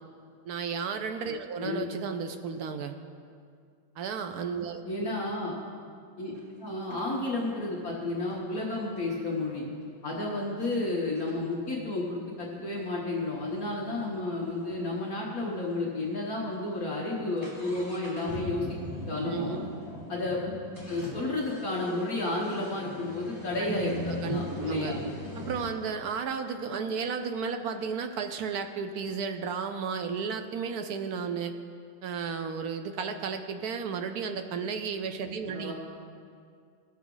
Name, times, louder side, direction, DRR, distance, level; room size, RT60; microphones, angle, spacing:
voice 1, 0.5-2.9 4.0-5.1 19.3-19.7 23.6-24.4 24.7-24.9 25.4-31.5 32.0-35.7, right 6 dB, 70° right, 7 dB, 0.9 m, -33 dB
voice 2, 4.8-5.5 6.2-6.3 6.6-9.7 10.0-18.7 19.1-19.6 20.1-20.5 20.9-25.0 35.5-35.7, left 2 dB, 50° left, -4 dB, 1.7 m, -32 dB
sound 1, 6.3-6.5 6.9-9.5 10.1-10.2 10.6-10.8 11.1-14.8 15.1-15.2 15.4-15.5 16.1-16.3 16.6-25.7, left 1 dB, 10° right, 1.5 m, -41 dB
18.0 x 7.1 x 3.9 m, 2.2 s
omnidirectional pair, 2.1 m